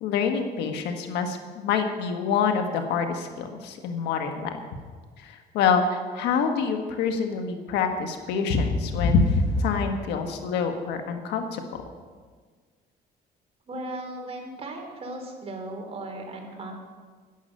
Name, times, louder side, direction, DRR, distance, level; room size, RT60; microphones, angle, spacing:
voice 1, 0.0-4.6 5.2-11.6, left 5 dB, 90° left, 5 dB, 1.5 m, -26 dB
voice 2, 13.7-16.7, right 2 dB, 35° right, 2 dB, 3.1 m, -36 dB
11.0 x 11.0 x 6.5 m, 1.5 s
cardioid pair, 110°, 17 cm